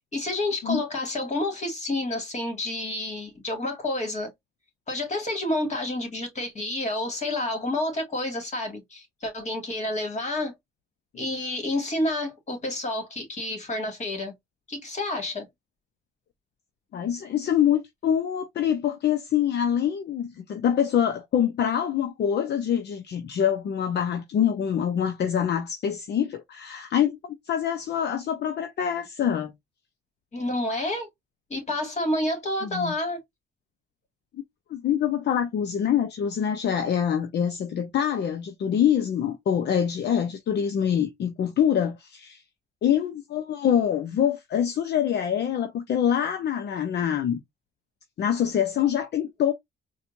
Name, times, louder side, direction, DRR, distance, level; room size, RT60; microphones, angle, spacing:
voice 1, 0.1-4.3 4.9-10.5 11.1-14.3 14.7-15.5 30.3-31.1 31.5-33.2, left 1 dB, 35° left, 2.0 m, -29 dB
voice 2, 16.9-29.5 32.6-32.9 34.7-42.4 42.8-47.4 48.2-49.5, left 9 dB, 60° left, 0.7 m, -25 dB
4.3 x 2.3 x 2.6 m
cardioid pair, 90°, 20 cm